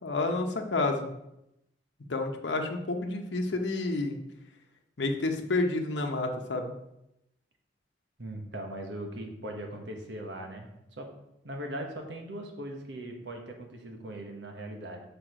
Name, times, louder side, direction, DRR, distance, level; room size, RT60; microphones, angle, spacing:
voice 1, 0.0-1.1 2.1-4.2 5.0-6.7, left 2 dB, 85° left, 3 dB, 0.8 m, -29 dB
voice 2, 8.2-11.1 11.4-15.0, right 1 dB, 85° right, 3 dB, 1.3 m, -39 dB
6.3 x 5.1 x 5.0 m, 0.84 s
head